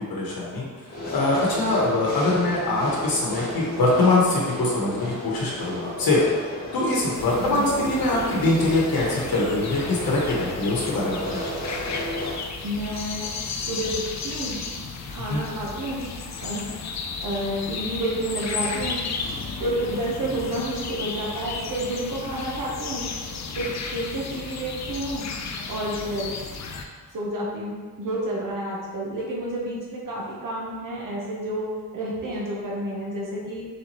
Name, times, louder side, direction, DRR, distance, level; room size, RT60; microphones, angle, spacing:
voice 1, 0.0-6.2 6.7-11.4 15.2-15.4, left 2 dB, 80° left, -4 dB, 0.9 m, -23 dB
sound 1, 0.9-12.4, left 1 dB, 25° left, 1.4 m, -34 dB
sound 2, 7.1-26.8, left 4 dB, 55° left, 0.4 m, -34 dB
voice 2, 12.6-13.3 13.6-14.6 15.1-16.1 16.4-16.7 17.2-19.0 19.6-23.0 23.5-25.2 25.7-26.3 27.1-33.7, right 1 dB, 65° right, -4 dB, 0.9 m, -30 dB
4.1 x 3.3 x 3.0 m, 1.5 s
wide cardioid pair, 135°, 35 cm